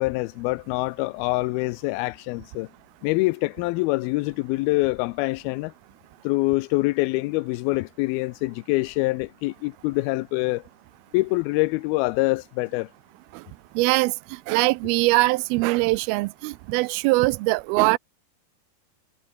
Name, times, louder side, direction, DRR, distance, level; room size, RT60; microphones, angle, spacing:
voice 1, 0.0-2.7 3.0-5.7 6.2-10.6 11.1-12.9, left 22 dB, 90° left, 2.5 m, -25 dB
voice 2, 13.8-14.1 14.5-18.0, right 22 dB, 90° right, 2.5 m, -21 dB
omnidirectional pair, 4.3 m